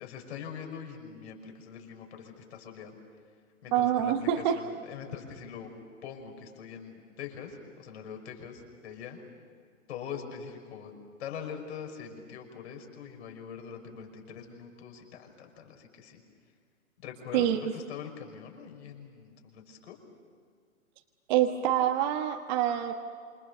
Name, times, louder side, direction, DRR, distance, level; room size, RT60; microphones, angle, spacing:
voice 1, 0.0-3.0 3.6-5.7 6.0-9.2 9.9-10.9 11.2-16.2 17.0-20.0, left 7 dB, 50° left, 3 dB, 5.9 m, -43 dB
voice 2, 3.7-4.6 17.3-17.6 21.3-22.9, right 11 dB, 35° right, 3 dB, 1.4 m, -26 dB
28.0 x 27.5 x 6.9 m, 2.1 s
hypercardioid pair, 140°, 42 cm